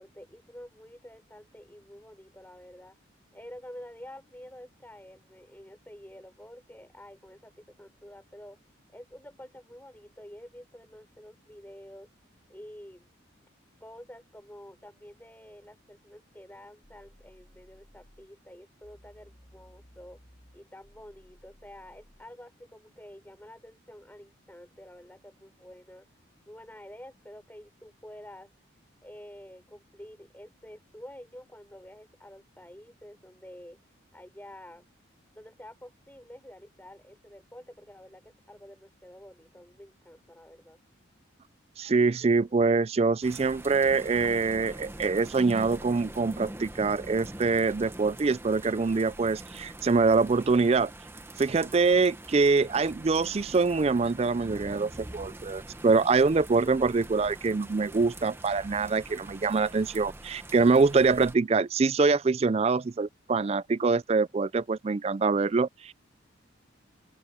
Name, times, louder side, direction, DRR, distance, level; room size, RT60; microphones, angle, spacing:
voice 1, 0.0-2.9 3.3-8.6 8.9-12.1 12.5-13.1 13.8-20.2 20.5-26.1 26.5-28.5 29.0-33.8 34.1-34.8 35.3-40.8, equal, 10° left, 4.0 m, -49 dB
sound 1, 16.8-18.3 18.8-22.3, equal, 30° left, 2.4 m, -57 dB
voice 2, 41.8-50.9 51.4-65.9, right 4 dB, 30° right, 0.3 m, -24 dB
sound 2, 43.2-61.4, right 1 dB, 10° right, 0.9 m, -44 dB
head